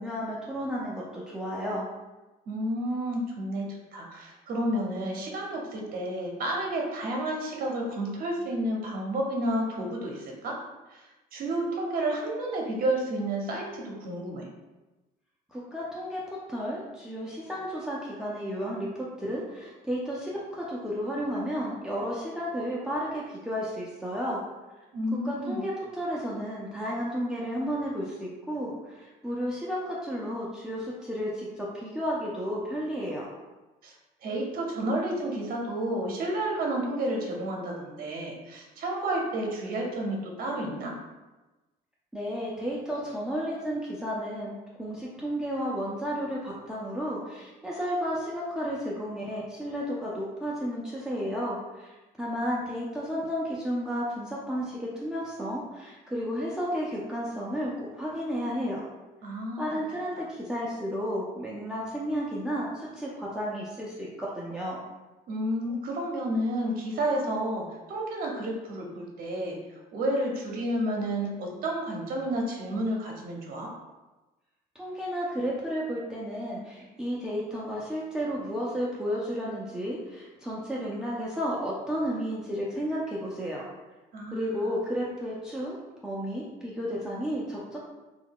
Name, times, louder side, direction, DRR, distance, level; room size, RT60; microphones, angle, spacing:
voice 1, 0.0-1.8 15.5-24.4 25.2-33.3 42.1-58.8 59.6-64.8 74.7-83.6 84.3-85.7 86.0-87.8, equal, 5° right, -6 dB, 0.5 m, -32 dB
voice 2, 2.5-10.6 10.9-11.0 11.3-14.5 24.9-25.6 33.8-33.9 34.2-40.9 59.2-59.6 65.3-69.6 69.9-73.7 84.1-84.5, right 1 dB, 60° right, 0 dB, 0.7 m, -31 dB
2.7 x 2.3 x 3.6 m, 1.1 s
cardioid pair, 110°, 17 cm